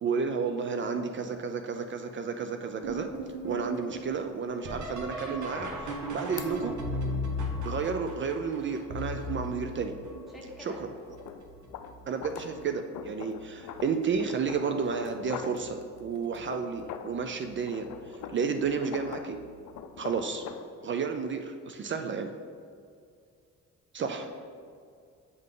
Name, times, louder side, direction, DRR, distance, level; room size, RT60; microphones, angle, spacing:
voice 1, 0.0-3.1 3.4-6.8 7.6-9.9 10.6-10.9 12.1-19.4 20.0-20.4 20.8-22.3 23.9-24.2, right 5 dB, 40° right, 6 dB, 0.4 m, -32 dB
sound 1, 2.8-10.5 11.2-11.7 12.2-12.8 14.1-14.2 14.9-15.2 17.4-17.5 19.8-19.9, left 1 dB, 75° right, 1.1 m, -36 dB
sound 2, 3.2-3.3 3.7-3.8 6.4-6.5 11.1-17.2 17.6-20.7, left 8 dB, 80° left, 0.5 m, -44 dB
sound 3, 8.1-19.8, right 5 dB, 25° right, 1.1 m, -57 dB
voice 2, 10.3-10.8 24.0-24.3, left 1 dB, ahead, -4 dB, 1.4 m, -46 dB
7.7 x 3.7 x 3.8 m, 2.3 s
cardioid pair, 90°, 30 cm